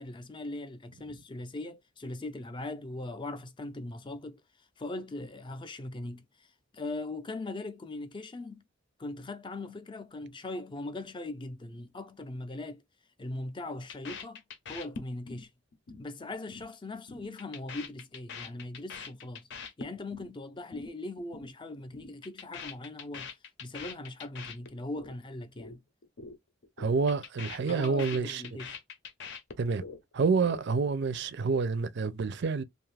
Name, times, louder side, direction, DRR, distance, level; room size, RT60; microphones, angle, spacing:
voice 1, 0.0-4.4 4.8-6.5 6.7-8.6 9.0-12.8 13.2-14.4 14.7-15.5 16.0-19.5 19.8-23.3 23.6-25.8 27.7-28.8, left 2 dB, 25° left, 0.4 m, -40 dB
sound 1, 13.9-15.4 15.7-16.0 16.3-16.7 16.9-20.3 20.6-20.9 21.2-21.5 21.8-25.1 25.4-25.8 26.0-26.4 26.6-30.0 30.3-30.9, left 5 dB, 65° left, 0.7 m, -43 dB
voice 2, 26.8-28.4 29.6-29.8 30.1-32.6, right 4 dB, 60° right, 0.5 m, -28 dB
2.6 x 2.4 x 3.2 m
head